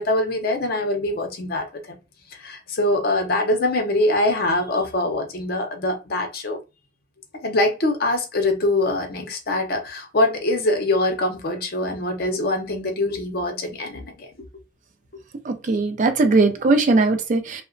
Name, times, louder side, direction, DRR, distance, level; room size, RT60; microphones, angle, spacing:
voice 1, 0.0-2.0 2.3-6.6 7.4-14.3, left 1 dB, 50° left, 0.6 m, -23 dB
voice 2, 15.4-17.6, right 3 dB, 40° right, 0.3 m, -19 dB
2.8 x 2.1 x 2.5 m
head